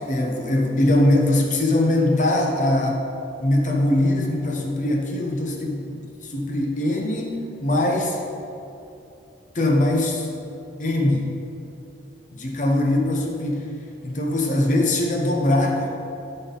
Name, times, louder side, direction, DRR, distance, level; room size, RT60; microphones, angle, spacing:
voice 1, 0.1-3.0 3.4-8.2 9.5-10.3 10.8-11.3 12.4-13.7 14.0-15.9, left 1 dB, 45° left, 0 dB, 1.0 m, -21 dB
11.5 x 3.9 x 4.0 m, 2.8 s
head